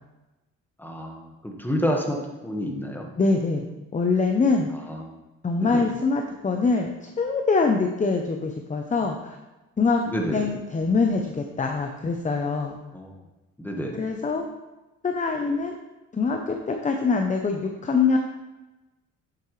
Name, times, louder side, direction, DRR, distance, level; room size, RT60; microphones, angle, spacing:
voice 1, 0.8-3.1 4.7-5.2 5.6-5.9 10.1-10.5 12.9-13.2 13.6-14.0, equal, 5° left, 1 dB, 1.5 m, -29 dB
voice 2, 3.2-3.6 3.9-4.7 5.4-9.4 9.8-10.0 10.3-12.8 13.9-14.5 15.0-15.7 16.1-18.2, left 4 dB, 25° left, 4 dB, 0.7 m, -24 dB
8.5 x 7.8 x 3.3 m, 1.1 s
cardioid pair, 90°, 30 cm